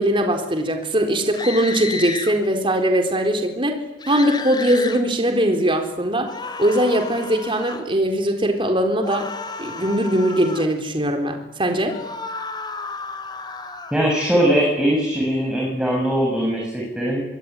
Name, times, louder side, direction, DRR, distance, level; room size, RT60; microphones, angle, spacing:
voice 1, 0.0-3.8 4.1-6.3 6.6-9.3 9.6-12.0, right 1 dB, 30° right, 4 dB, 4.1 m, -20 dB
sound 1, 1.3-2.3 4.0-5.0 6.3-7.9 9.0-10.7 11.8-14.0, left 3 dB, 25° left, 2.8 m, -32 dB
voice 2, 13.9-17.2, equal, 5° right, -2 dB, 7.8 m, -20 dB
25.0 x 24.0 x 9.8 m, 0.96 s
head